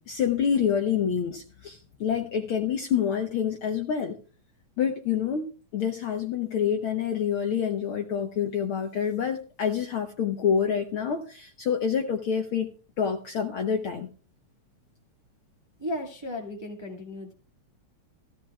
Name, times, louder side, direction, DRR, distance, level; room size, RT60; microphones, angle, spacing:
voice 1, 0.1-4.2 4.8-14.1, left 7 dB, 65° left, 1.4 m, -27 dB
voice 2, 15.8-17.3, left 1 dB, 15° right, 1.2 m, -35 dB
16.5 x 14.0 x 2.3 m
omnidirectional pair, 3.3 m